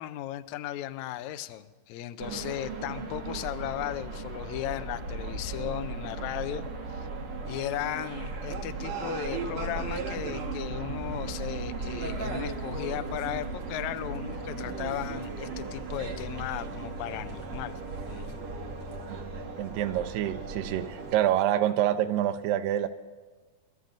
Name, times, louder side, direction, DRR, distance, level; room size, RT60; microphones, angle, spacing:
voice 1, 0.0-6.6 6.9-7.1 7.5-17.8 18.1-18.4, left 13 dB, 90° left, 9 dB, 1.6 m, -36 dB
sound 1, 2.2-21.2, right 3 dB, 55° right, 1.6 m, -36 dB
voice 2, 19.6-22.9, right 11 dB, 85° right, 8 dB, 2.3 m, -27 dB
29.0 x 13.0 x 2.6 m, 1.3 s
omnidirectional pair, 4.0 m